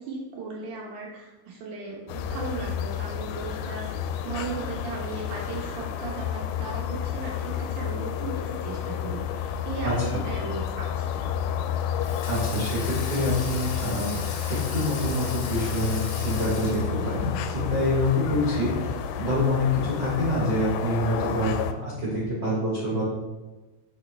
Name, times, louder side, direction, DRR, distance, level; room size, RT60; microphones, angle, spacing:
voice 1, 0.0-11.3, right 4 dB, 75° right, -3 dB, 1.8 m, -36 dB
sound 1, 2.1-21.7, left 8 dB, 90° left, 2.7 m, -31 dB
voice 2, 9.8-10.2 12.3-14.1 14.5-23.0, left 1 dB, 50° right, -7 dB, 1.3 m, -26 dB
Water tap faucet / Sink (filling or washing), 12.0-17.2, left 5 dB, 70° left, 1.8 m, -39 dB
6.3 x 6.0 x 3.4 m, 1.1 s
omnidirectional pair, 4.8 m